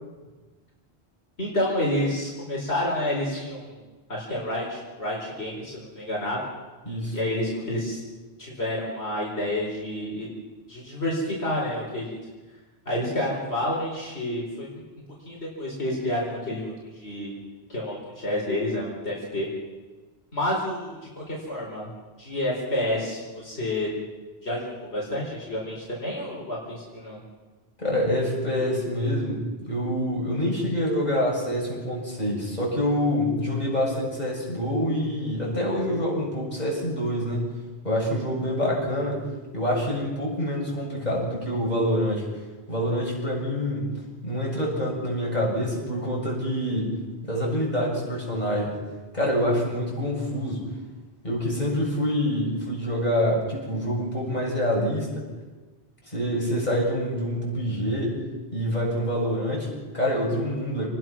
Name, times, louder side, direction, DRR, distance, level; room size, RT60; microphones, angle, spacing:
voice 1, 1.4-3.7 4.1-6.4 7.1-8.0 8.4-10.3 10.7-12.2 12.8-14.7 15.3-17.3 17.7-19.5 20.3-21.9 22.2-23.9 24.4-27.2, left 1 dB, 70° left, -3 dB, 4.7 m, -29 dB
voice 2, 6.9-7.2 27.8-37.5 37.8-39.2 39.5-42.3 42.7-43.9 44.2-46.9 47.2-48.7 49.1-50.7 51.2-55.2 56.1-58.2 58.5-60.9, equal, 40° left, -3 dB, 7.5 m, -26 dB
28.5 x 20.0 x 6.1 m, 1.3 s
omnidirectional pair, 1.1 m